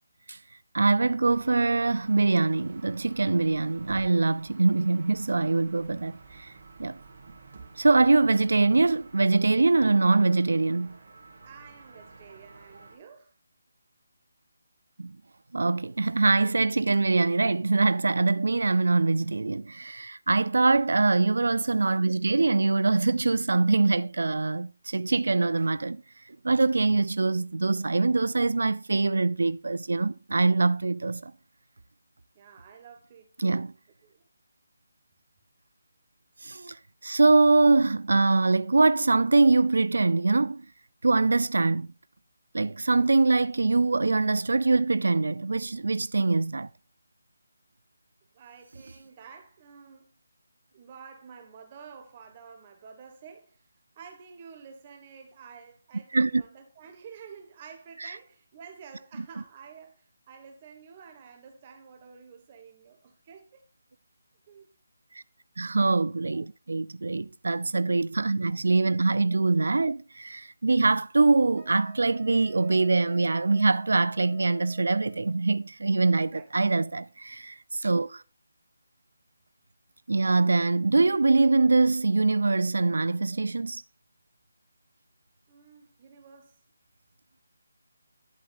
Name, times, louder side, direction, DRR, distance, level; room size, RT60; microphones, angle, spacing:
voice 1, 0.7-6.5 6.8-7.0 7.8-11.0 15.0-15.2 15.5-26.0 26.3-31.3 33.4-33.7 36.4-40.6 41.0-41.9 42.5-46.7 56.1-56.4 58.0-58.1 65.1-65.2 65.6-78.2 80.1-83.8, right 3 dB, 85° right, 0.4 m, -23 dB
sound 1, 1.2-13.0, right 4 dB, 45° right, 2.9 m, -50 dB
voice 2, 11.4-13.3 32.3-33.7 34.0-34.3 48.3-50.1 50.7-53.6 53.9-63.6 64.5-64.7 66.3-66.4 76.1-76.8 85.5-86.6, right 6 dB, 20° right, 1.4 m, -50 dB
Wind instrument woodwind instrument, 71.6-75.4, left 2 dB, 5° left, 1.2 m, -52 dB
11.5 x 7.8 x 2.5 m
hypercardioid pair, 180°, 0 cm